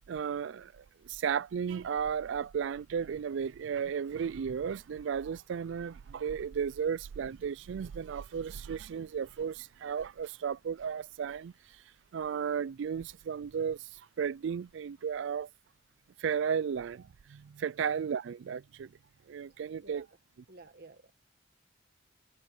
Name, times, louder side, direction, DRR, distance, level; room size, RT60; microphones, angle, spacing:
voice 1, 0.0-11.8 12.1-15.5 16.2-18.9 19.3-20.1, right 7 dB, 65° right, 0.3 m, -34 dB
voice 2, 19.8-20.2 20.5-21.1, right 2 dB, 50° right, 1.4 m, -52 dB
head